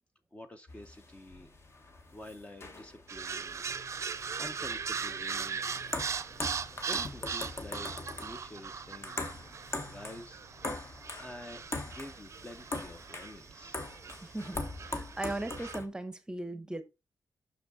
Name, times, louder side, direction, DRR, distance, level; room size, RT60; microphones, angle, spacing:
voice 1, 0.3-1.5 2.1-3.6 3.9-5.8 6.2-7.9 8.2-9.1 9.8-14.0, left 1 dB, 20° left, 0.6 m, -49 dB
sound 1, 0.7-15.9, left 2 dB, 40° left, 1.2 m, -42 dB
sound 2, 3.1-15.8, right 6 dB, 45° right, 0.6 m, -39 dB
sound 3, 3.6-11.2, left 3 dB, 60° left, 3.2 m, -58 dB
voice 2, 14.2-16.8, right 1 dB, 10° right, 0.8 m, -38 dB
6.2 x 5.8 x 4.0 m
wide cardioid pair, 155°, 7 cm